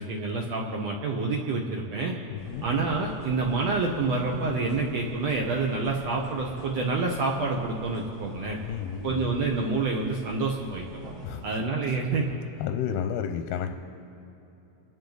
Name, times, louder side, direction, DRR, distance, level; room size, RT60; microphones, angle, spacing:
voice 1, 0.0-2.1 2.6-8.6 9.0-10.8 11.4-12.3, right 3 dB, 70° right, 0 dB, 1.6 m, -28 dB
voice 2, 2.3-2.6 8.6-9.3 11.2-11.5 11.8-12.0 12.6-13.7, left 9 dB, 90° left, 6 dB, 2.5 m, -32 dB
sound 1, 2.4-11.5, right 1 dB, 35° right, 2.1 m, -45 dB
28.0 x 10.5 x 4.0 m, 2.9 s
omnidirectional pair, 4.3 m